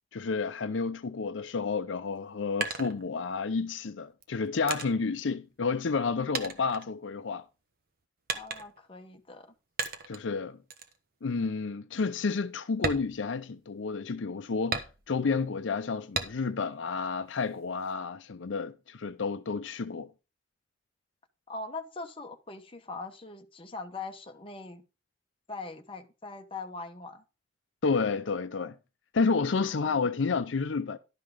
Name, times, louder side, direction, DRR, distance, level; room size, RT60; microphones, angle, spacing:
voice 1, 0.1-7.4 10.1-10.6 11.2-20.1 27.8-28.8 29.1-31.0, left 4 dB, 80° left, 0.6 m, -30 dB
sound 1, 2.1-3.6 4.2-6.1 6.3-7.5 8.3-8.9 9.8-10.3 10.7-11.0 11.4-11.5 11.9-12.1 12.7-13.9 14.7-15.4 16.1-16.7 17.1-17.9, right 4 dB, 50° right, 1.2 m, -36 dB
voice 2, 8.3-9.5 21.5-24.8 25.5-27.2 29.5-30.0, left 3 dB, 30° left, 1.1 m, -41 dB
11.5 x 5.7 x 4.9 m
head